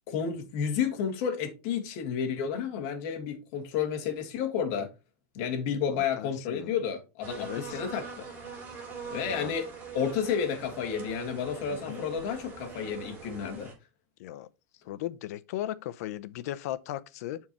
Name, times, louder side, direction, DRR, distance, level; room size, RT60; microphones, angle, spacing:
voice 1, 0.1-4.9 5.3-8.3 9.1-9.7 9.9-13.7, left 7 dB, 50° left, 2.0 m, -31 dB
voice 2, 5.9-6.7 7.4-7.8 9.3-9.5 11.7-12.1 14.2-14.5 14.9-17.4, left 13 dB, 70° left, 0.7 m, -37 dB
sound 1, 7.2-13.7, right 5 dB, 20° right, 3.1 m, -42 dB
10.5 x 4.6 x 3.1 m
supercardioid pair, 175°, 9 cm